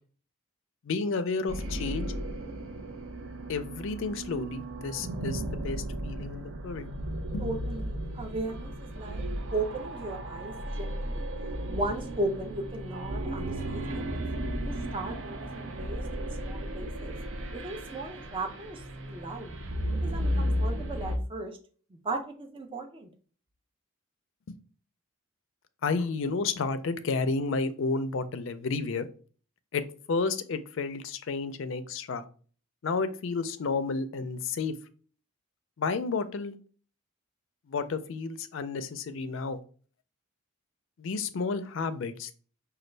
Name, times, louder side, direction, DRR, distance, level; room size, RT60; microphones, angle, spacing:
voice 1, 0.8-2.1 3.5-6.9 7.3-7.4 25.8-29.1 29.7-29.8 30.1-32.2 32.8-34.7 35.8-36.6 37.7-39.6 41.0-42.3, left 4 dB, 60° left, 11 dB, 0.4 m, -31 dB
sound 1, 1.5-21.2, equal, 60° right, 0.6 m, -34 dB
voice 2, 7.4-9.2 9.5-11.3 11.7-14.2 14.6-17.2 17.5-19.5 20.0-21.6 22.0-23.1, right 2 dB, 25° right, 3 dB, 0.5 m, -36 dB
5.1 x 2.3 x 3.2 m, 0.42 s
head